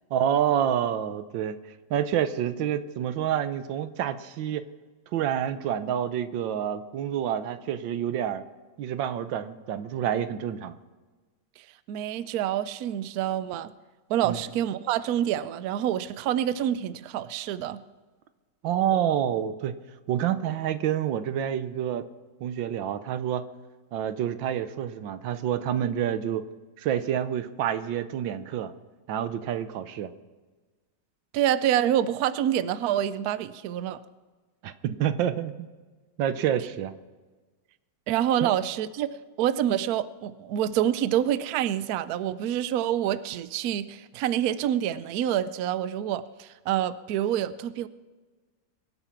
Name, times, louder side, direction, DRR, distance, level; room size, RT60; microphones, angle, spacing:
voice 1, 0.1-1.6 1.9-4.6 5.1-8.4 8.8-10.7 14.2-14.4 18.6-19.7 20.1-22.1 22.4-23.4 23.9-26.4 26.8-28.7 29.1-30.1 34.6-35.7 36.2-36.9 38.4-38.5, right 10 dB, 90° right, 12 dB, 1.5 m, -28 dB
voice 2, 11.9-13.7 14.1-17.8 31.3-34.0 38.1-39.1 39.4-47.9, right 11 dB, 65° right, 14 dB, 1.0 m, -27 dB
23.0 x 8.2 x 5.9 m, 1.3 s
omnidirectional pair, 2.0 m